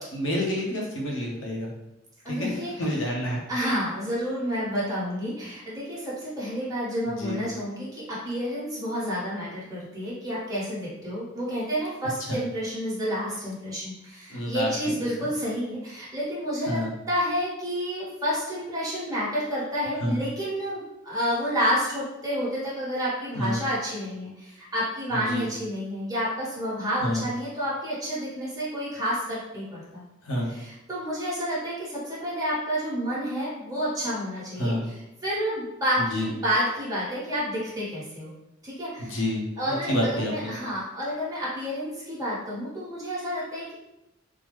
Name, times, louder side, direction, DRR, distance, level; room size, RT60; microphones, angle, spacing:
voice 1, 0.0-1.7 2.3-3.4 7.2-7.4 12.3-12.4 14.3-14.9 16.7-16.9 20.0-20.2 23.4-23.6 25.1-25.4 27.0-27.2 30.2-30.5 34.6-34.8 36.1-36.3 39.0-40.5, left 1 dB, 85° left, -2 dB, 0.8 m, -28 dB
voice 2, 2.2-2.8 3.5-30.0 30.5-38.3 38.6-39.2 39.6-43.7, equal, 20° right, -8 dB, 1.1 m, -30 dB
3.6 x 2.0 x 3.0 m, 0.90 s
head